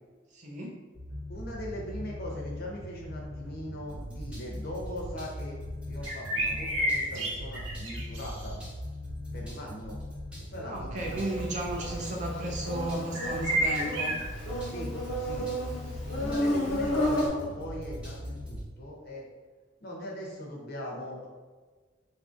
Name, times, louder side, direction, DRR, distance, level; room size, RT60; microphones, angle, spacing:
voice 1, 0.3-0.7 10.6-14.1, right 1 dB, 40° right, -1 dB, 0.5 m, -34 dB
sound 1, 0.9-18.7, equal, 5° right, 0.7 m, -40 dB
voice 2, 1.3-5.6 5.9-8.6 9.3-10.0 10.5-11.4 14.7-15.5 16.1-19.3 19.8-21.3, left 1 dB, 50° left, -2 dB, 0.7 m, -40 dB
sound 2, 6.1-8.5 13.1-14.3, right 1 dB, 80° right, 0.8 m, -30 dB
Insect, 11.0-17.3, equal, 85° left, 0.9 m, -32 dB
3.9 x 2.6 x 2.4 m, 1.4 s
head